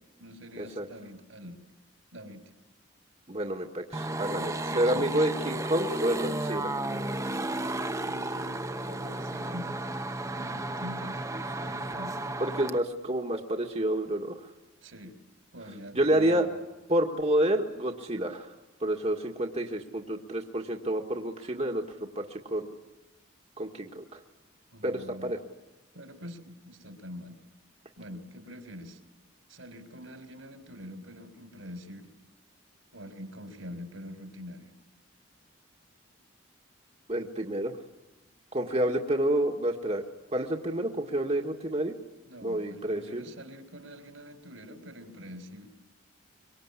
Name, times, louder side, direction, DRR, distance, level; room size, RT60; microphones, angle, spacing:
voice 1, 0.2-1.6 2.1-2.4 4.3-5.1 8.1-9.7 10.3-11.3 11.6-12.2 14.8-15.2 15.5-16.5 24.7-25.3 25.9-27.4 28.0-29.0 29.5-32.1 32.9-34.7 42.3-45.7, equal, 70° right, 8 dB, 3.9 m, -45 dB
voice 2, 3.3-6.7 12.4-14.5 16.0-16.5 16.9-18.5 18.8-22.7 23.6-24.2 24.8-25.4 37.1-37.8 38.5-40.0 40.3-42.0 42.4-43.2, right 1 dB, 30° right, 2 dB, 1.9 m, -29 dB
sound 1, 3.9-12.8, right 2 dB, 15° right, 1.1 m, -33 dB
25.0 x 24.0 x 9.9 m, 1.1 s
head